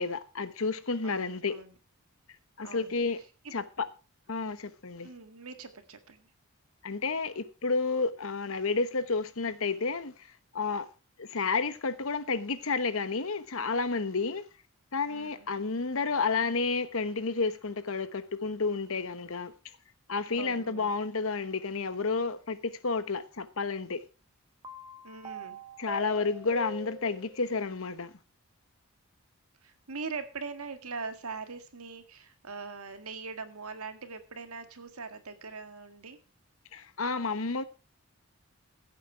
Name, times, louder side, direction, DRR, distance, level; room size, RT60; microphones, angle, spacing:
voice 1, 0.0-1.5 2.6-3.2 3.5-3.9 4.3-5.1 6.8-10.1 10.5-10.9 11.2-14.4 14.9-19.5 20.1-24.0 25.8-28.1 36.7-37.6, left 4 dB, 70° left, 1.1 m, -31 dB
voice 2, 1.0-1.7 2.6-3.5 5.0-6.3 15.1-15.5 20.3-21.0 25.0-25.6 29.6-36.2, right 4 dB, 80° right, 1.7 m, -42 dB
sound 1, 24.6-27.5, right 1 dB, 15° right, 1.3 m, -44 dB
15.5 x 8.3 x 4.6 m
head